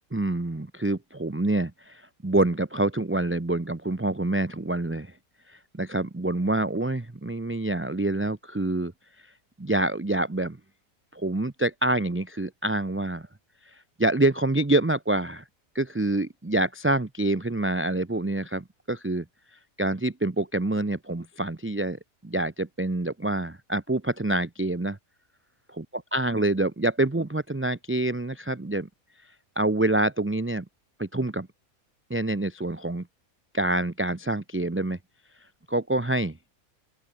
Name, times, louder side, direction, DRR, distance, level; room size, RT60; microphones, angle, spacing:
voice 1, 0.1-5.1 5.5-8.9 9.6-10.6 11.1-13.3 13.7-15.4 15.7-19.2 19.8-25.0 25.7-25.8 26.1-28.9 29.6-30.6 31.0-31.5 32.1-33.1 33.5-35.0 35.7-36.4, right 2 dB, 15° right, 0.6 m, -26 dB
open air
omnidirectional pair, 1.5 m